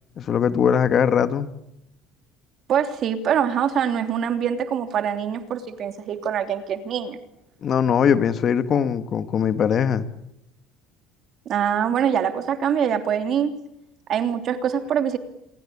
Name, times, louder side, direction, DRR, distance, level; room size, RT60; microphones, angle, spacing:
voice 1, 0.2-1.5 7.6-10.1, left 7 dB, 35° left, 1.7 m, -21 dB
voice 2, 2.7-7.2 11.4-13.5 14.1-15.2, right 8 dB, 45° right, 3.1 m, -24 dB
27.5 x 23.0 x 8.6 m
cardioid pair, 140°, 0 cm